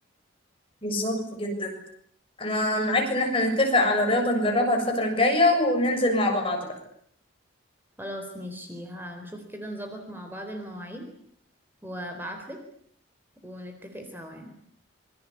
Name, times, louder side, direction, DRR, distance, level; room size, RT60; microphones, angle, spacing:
voice 1, 0.8-1.7 2.4-6.7, left 1 dB, 25° left, 3 dB, 7.0 m, -23 dB
voice 2, 8.0-11.1 11.8-12.6 13.4-14.5, equal, 10° right, 4 dB, 4.0 m, -38 dB
27.0 x 24.0 x 8.6 m, 0.68 s
head